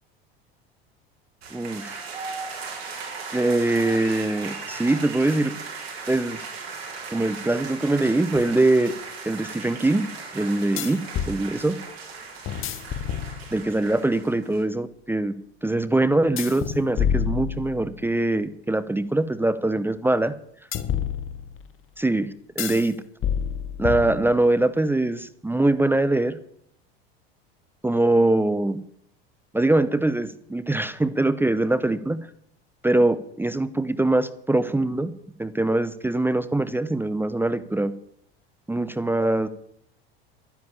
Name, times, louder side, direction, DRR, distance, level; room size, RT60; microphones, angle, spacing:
sound 1, 1.4-14.6, right 5 dB, 75° right, 4.3 m, -37 dB
voice 1, 1.5-2.0 3.3-5.6 6.1-6.4 7.1-8.9 9.2-10.1 10.3-11.8 13.5-15.3 15.6-20.3 22.0-23.0 23.8-26.4 27.8-28.8 29.5-32.2 32.8-35.1 35.4-37.9 38.7-39.5, right 2 dB, 5° right, 14 dB, 0.8 m, -23 dB
sound 2, 8.3-8.4 10.8-11.4 12.5-13.8 16.4-18.1 20.7-21.7 22.6-22.9 23.2-24.6, left 8 dB, 40° left, 1.4 m, -28 dB
12.0 x 10.0 x 7.2 m, 0.71 s
hypercardioid pair, 85°, 31 cm